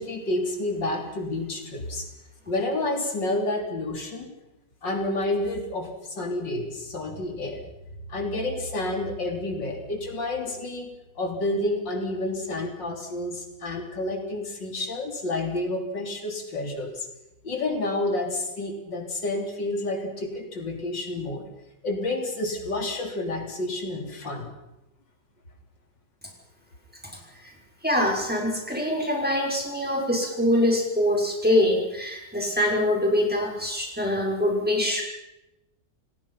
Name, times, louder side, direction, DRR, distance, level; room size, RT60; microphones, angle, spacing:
voice 1, 0.0-2.1 2.5-4.3 4.8-7.7 8.1-10.9 11.2-17.1 17.4-21.5 21.8-24.5, left 2 dB, 90° left, 2 dB, 4.1 m, -29 dB
voice 2, 27.8-35.0, left 1 dB, 5° right, -1 dB, 6.0 m, -24 dB
29.5 x 19.5 x 5.8 m, 0.94 s
omnidirectional pair, 1.9 m